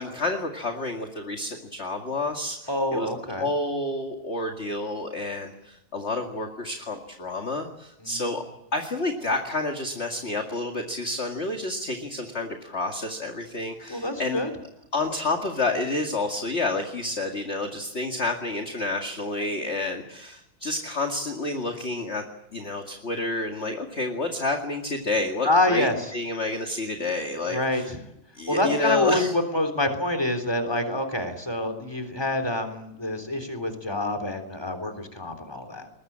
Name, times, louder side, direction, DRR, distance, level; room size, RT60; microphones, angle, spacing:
voice 1, 0.0-3.1 3.4-8.4 8.7-14.4 14.9-22.2 22.5-27.9 28.4-29.3, left 2 dB, 30° left, 3 dB, 2.3 m, -29 dB
voice 2, 2.7-3.5 8.0-8.3 13.9-14.5 25.4-26.1 27.5-28.0 28.5-35.9, left 1 dB, 10° left, 7 dB, 3.5 m, -26 dB
21.5 x 21.0 x 8.8 m, 0.84 s
omnidirectional pair, 2.3 m